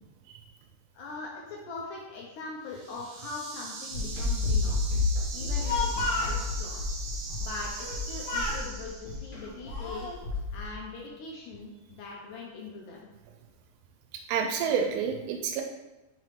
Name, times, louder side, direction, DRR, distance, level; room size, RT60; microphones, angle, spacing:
voice 1, 0.9-4.9 5.3-7.0 7.4-10.1 10.5-13.1, left 3 dB, 85° left, -3 dB, 1.8 m, -41 dB
sound 1, 2.6-9.4, right 4 dB, 75° right, 2.9 m, -41 dB
sound 2, 3.9-10.7, left 3 dB, 45° left, 1.7 m, -31 dB
Speech, 5.4-6.4 7.8-8.0 8.3-8.7 9.4-10.2, left 3 dB, 70° left, 1.9 m, -32 dB
voice 2, 14.3-15.6, right 6 dB, 90° right, 3 dB, 2.7 m, -28 dB
5.8 x 5.2 x 3.2 m, 1.1 s
omnidirectional pair, 4.7 m